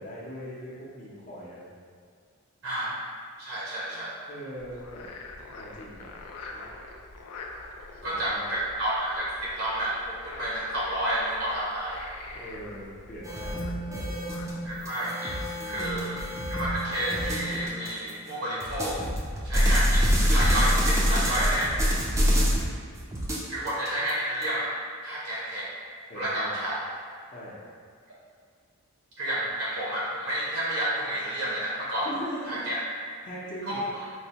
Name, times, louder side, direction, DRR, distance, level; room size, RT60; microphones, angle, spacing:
voice 1, 0.0-1.6 3.9-5.1 5.4-6.2 6.5-6.6 8.0-8.5 12.3-14.1 15.5-16.1 22.1-22.6 26.1-26.6 27.3-27.6 32.0-32.6 33.2-33.8, equal, 35° left, -6 dB, 0.6 m, -41 dB
voice 2, 2.6-3.0 3.4-4.2 8.0-12.1 14.6-16.2 16.5-19.0 19.4-21.7 23.5-24.8 25.0-25.7 26.1-26.8 29.2-32.1 32.5-32.8 33.6-33.8, right 1 dB, 70° right, -7 dB, 0.7 m, -30 dB
Frog, 4.6-14.9, left 3 dB, 85° left, 0.4 m, -44 dB
sound 1, 13.2-18.1 18.6-22.8 23.1-24.4, equal, 15° right, 0.3 m, -26 dB
4.5 x 2.1 x 2.8 m, 2.1 s
head